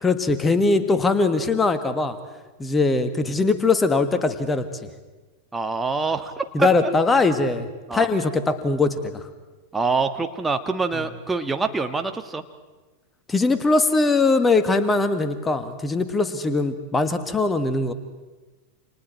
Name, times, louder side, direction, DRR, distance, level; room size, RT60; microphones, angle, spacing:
voice 1, 0.0-2.2 2.6-4.7 6.5-9.3 13.3-17.9, left 3 dB, 15° left, 10 dB, 1.6 m, -21 dB
voice 2, 5.5-6.7 7.9-8.1 9.7-12.4, right 4 dB, 10° right, 6 dB, 1.6 m, -25 dB
29.5 x 27.0 x 4.5 m, 1.2 s
figure-of-eight pair, 90°, 0 cm